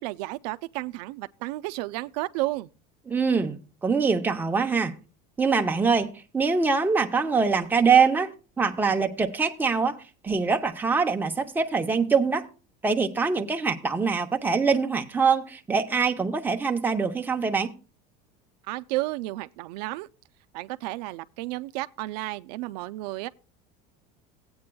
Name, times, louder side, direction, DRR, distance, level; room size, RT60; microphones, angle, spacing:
voice 1, 0.0-2.7 18.6-20.1 20.5-23.3, right 19 dB, 80° right, 0.4 m, -32 dB
voice 2, 3.1-4.9 5.4-10.0 10.2-12.4 12.8-17.7, right 5 dB, 10° right, 0.7 m, -24 dB
16.5 x 8.6 x 2.3 m
cardioid pair, 145°, 20 cm